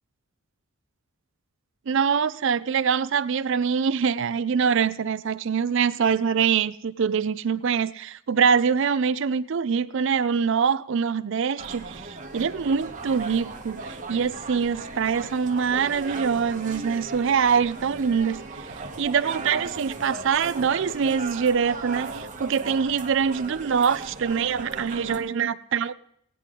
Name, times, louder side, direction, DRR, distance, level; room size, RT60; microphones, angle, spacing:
voice 1, 1.9-25.9, right 6 dB, 55° right, 0.4 m, -24 dB
sound 1, 11.6-25.2, right 3 dB, 35° right, 1.1 m, -37 dB
17.0 x 9.9 x 3.8 m
head